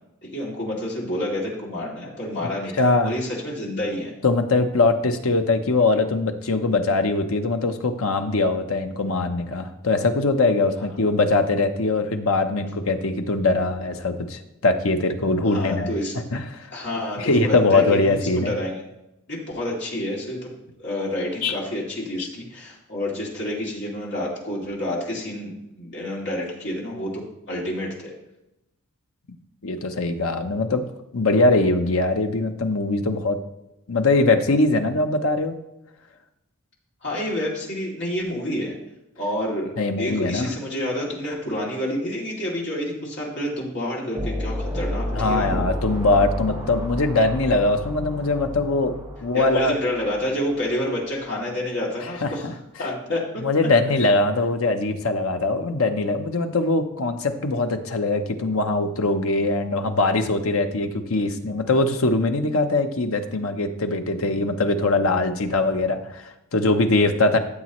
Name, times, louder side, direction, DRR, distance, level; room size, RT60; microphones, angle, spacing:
voice 1, 0.2-4.1 15.5-16.2 16.7-18.8 19.3-20.5 20.8-28.1 37.0-38.8 39.2-39.7 40.0-45.7 49.3-52.5 52.8-53.4, left 1 dB, 50° left, -4 dB, 2.7 m, -29 dB
voice 2, 2.8-3.1 4.2-15.9 16.3-16.7 17.2-18.5 21.4-21.6 22.2-22.3 29.6-30.8 31.1-33.4 33.9-35.6 39.8-40.5 45.1-48.9 49.2-49.8 52.0-52.5 53.4-67.4, left 2 dB, 70° left, 7 dB, 0.9 m, -22 dB
sound 1, 44.1-50.6, equal, 5° right, 3.7 m, -31 dB
13.5 x 7.5 x 3.1 m, 0.90 s
head